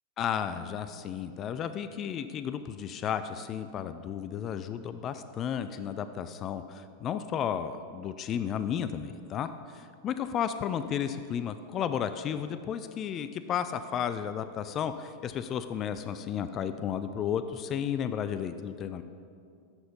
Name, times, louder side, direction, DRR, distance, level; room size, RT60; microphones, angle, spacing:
voice 1, 0.2-19.0, left 8 dB, 35° left, 10 dB, 0.3 m, -33 dB
7.0 x 6.3 x 5.3 m, 2.3 s
figure-of-eight pair, 90°, 0 cm